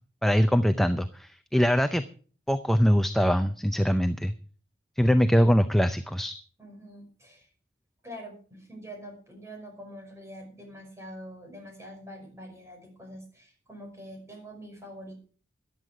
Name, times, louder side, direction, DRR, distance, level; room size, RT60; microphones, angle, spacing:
voice 1, 0.2-2.0 2.5-4.3 5.0-6.3, equal, ahead, 9 dB, 0.5 m, -23 dB
voice 2, 6.6-7.5 8.0-15.2, equal, 15° right, 2 dB, 5.5 m, -45 dB
14.5 x 11.0 x 4.9 m, 0.41 s
head